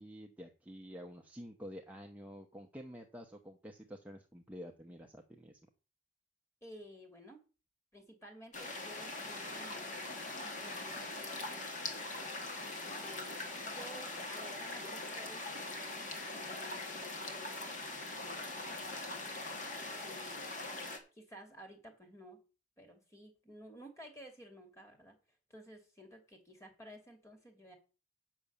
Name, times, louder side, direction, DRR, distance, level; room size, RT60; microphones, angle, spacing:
voice 1, 0.0-5.6, equal, 10° right, 1 dB, 0.9 m, -49 dB
voice 2, 6.6-7.4 7.9-10.3 10.6-11.7 13.0-17.6 17.9-20.5 21.1-22.4 22.8-25.2 25.5-27.7, equal, 15° left, 4 dB, 2.6 m, -54 dB
sound 1, 8.5-21.0, left 2 dB, 45° left, 2.1 m, -42 dB
8.6 x 6.3 x 6.8 m, 0.34 s
head